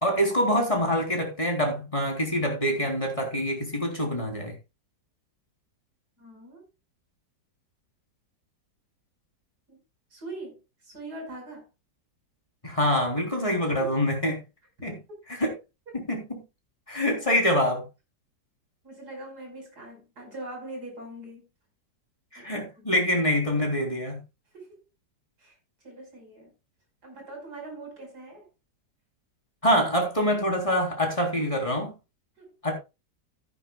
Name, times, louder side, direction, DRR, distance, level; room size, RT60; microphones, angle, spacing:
voice 1, 0.0-4.5 12.6-14.4 14.8-15.0 15.4-15.5 16.1-16.2 16.9-17.8 22.3-24.2 29.6-31.9 32.6-32.7, equal, 20° left, 2 dB, 3.7 m, -25 dB
voice 2, 6.2-6.7 9.7-9.8 10.1-11.7 13.8-14.0 17.0-17.8 18.8-21.5 22.4-23.0 24.5-24.8 25.4-25.6 25.8-26.5 27.0-28.5 32.4-32.6, right 2 dB, 65° right, 1 dB, 5.8 m, -42 dB
14.5 x 10.0 x 2.3 m, 0.27 s
omnidirectional pair, 1.8 m